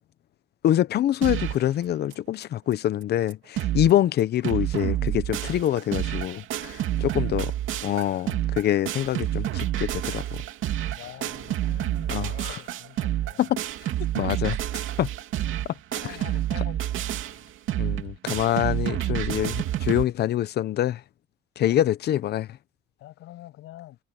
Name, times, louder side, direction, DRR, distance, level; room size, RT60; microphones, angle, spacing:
voice 1, 0.6-7.5 7.8-10.4 12.1-12.6 13.4-13.6 14.1-14.6 15.0-15.1 17.8-21.0 21.6-22.5, left 12 dB, 50° left, 0.7 m, -25 dB
sound 1, 1.2-1.7 2.1-2.2 2.4-2.5 3.0-3.1 3.3-3.9 4.2-20.0, right 12 dB, 70° right, 2.8 m, -29 dB
voice 2, 6.8-7.2 10.9-13.5 14.7-14.8 15.4-15.5 16.0-17.5 21.7-21.9 23.0-24.0, left 15 dB, 80° left, 6.8 m, -46 dB
cardioid pair, 170°, 21 cm